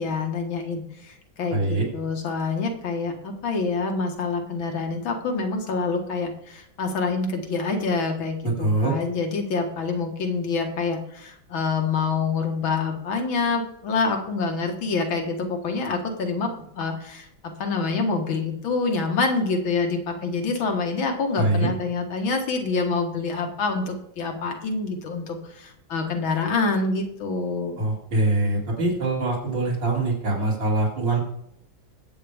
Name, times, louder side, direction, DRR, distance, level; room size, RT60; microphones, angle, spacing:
voice 1, 0.0-27.8, left 4 dB, 90° left, 3 dB, 2.3 m, -26 dB
voice 2, 1.5-1.8 8.4-8.9 21.3-21.7 27.8-31.2, right 2 dB, 70° right, -5 dB, 3.5 m, -23 dB
20.5 x 8.2 x 3.5 m, 0.75 s
omnidirectional pair, 2.1 m